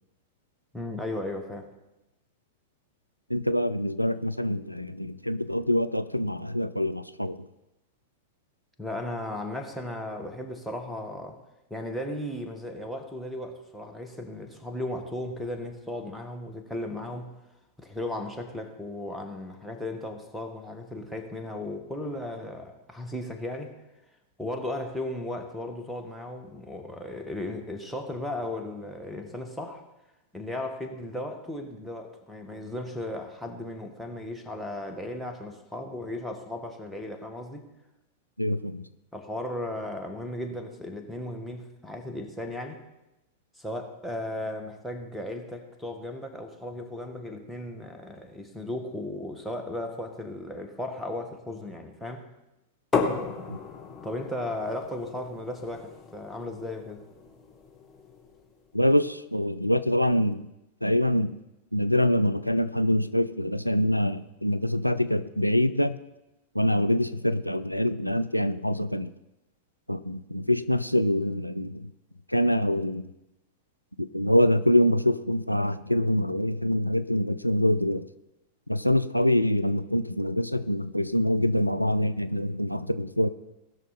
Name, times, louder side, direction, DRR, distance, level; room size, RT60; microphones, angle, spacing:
voice 1, 0.7-1.7 8.8-11.4 11.7-17.3 17.8-23.7 24.4-29.8 30.3-37.6 39.1-42.8 43.5-52.3 54.0-57.0, left 1 dB, ahead, 1.5 m, -36 dB
voice 2, 3.3-7.5 38.4-38.8 53.5-53.6 58.7-60.5 60.8-61.4 61.7-66.0 66.5-69.1 69.9-71.9 72.3-73.1 74.0-78.1 78.7-83.3, left 1 dB, 90° left, 0.3 m, -25 dB
sound 1, 52.9-58.6, left 4 dB, 15° left, 1.7 m, -34 dB
18.5 x 6.2 x 4.3 m
figure-of-eight pair, 90°, 0 cm